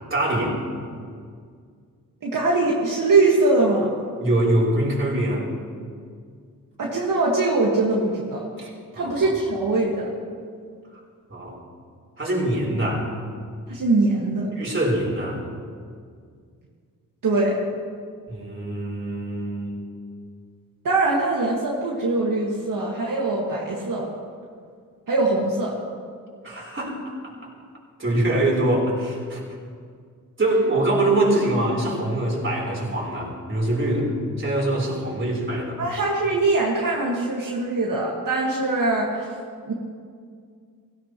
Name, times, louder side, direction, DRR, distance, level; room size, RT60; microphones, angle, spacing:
voice 1, 0.1-0.5 4.2-5.5 8.6-9.2 11.3-11.6 12.2-13.1 14.5-15.4 18.3-19.7 26.4-27.0 28.0-29.4 30.4-34.1 34.4-35.8, right 1 dB, 35° right, -3 dB, 4.1 m, -23 dB
voice 2, 2.2-3.9 6.8-8.4 9.0-10.1 13.7-14.5 17.2-17.6 20.8-24.1 25.1-25.7 35.8-39.2 39.7-39.8, right 2 dB, 70° right, -4 dB, 1.9 m, -22 dB
16.5 x 16.0 x 3.1 m, 2.1 s
cardioid pair, 75°, 34 cm